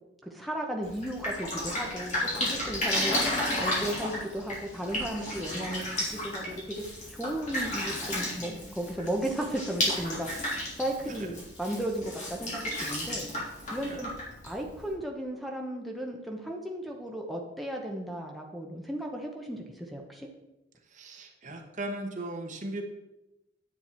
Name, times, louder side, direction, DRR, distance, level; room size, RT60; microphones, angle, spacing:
voice 1, 0.2-6.6 7.1-13.3 13.7-14.1 14.4-20.3, right 1 dB, ahead, 1 dB, 0.9 m, -35 dB
Drip, 0.8-14.9, left 1 dB, 40° left, 3.4 m, -33 dB
voice 2, 2.4-2.7 5.2-5.6 6.3-6.6 8.4-8.8 11.0-11.3 13.8-14.1 20.9-22.8, right 1 dB, 40° right, 3 dB, 1.3 m, -40 dB
9.9 x 7.9 x 4.3 m, 0.96 s
head